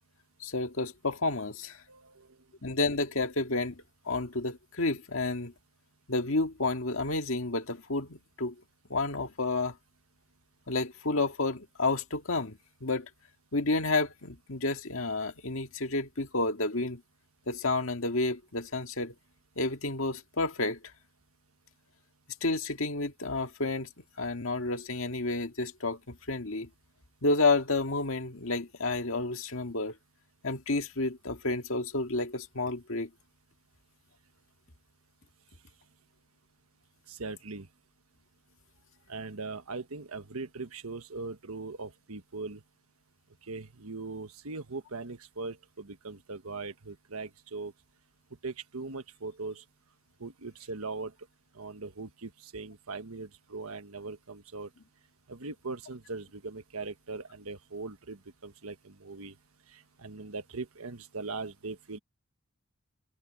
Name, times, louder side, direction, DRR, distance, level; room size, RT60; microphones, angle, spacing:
voice 1, 0.4-1.8 2.6-5.5 6.1-8.6 8.9-9.8 10.7-13.1 13.5-17.0 17.5-19.1 19.6-20.8 22.4-23.9 24.2-26.7 27.2-30.0 30.4-33.1, left 3 dB, 65° left, 2.0 m, -30 dB
voice 2, 1.9-2.3 37.1-37.7 39.1-42.6 43.5-47.7 48.4-49.6 50.2-51.1 51.5-54.7 55.3-59.3 59.7-62.0, right 3 dB, 85° right, 1.4 m, -40 dB
open air
head